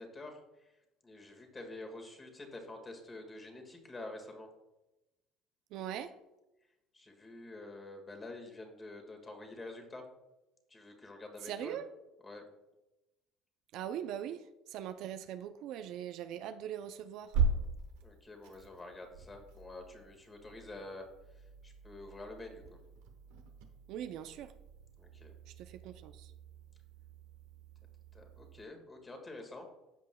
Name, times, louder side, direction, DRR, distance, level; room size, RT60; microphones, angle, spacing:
voice 1, 0.0-4.5 6.9-10.1 10.7-11.8 12.2-12.4 18.0-22.8 25.0-25.3 28.1-29.7, left 2 dB, 20° left, 1.7 m, -48 dB
voice 2, 5.7-6.1 11.4-11.9 13.7-17.4 23.9-24.5 25.5-26.3, right 10 dB, 65° right, 0.4 m, -41 dB
sound 1, 17.2-28.7, right 4 dB, 85° right, 0.9 m, -40 dB
13.5 x 5.2 x 2.2 m
supercardioid pair, 100°, 0 cm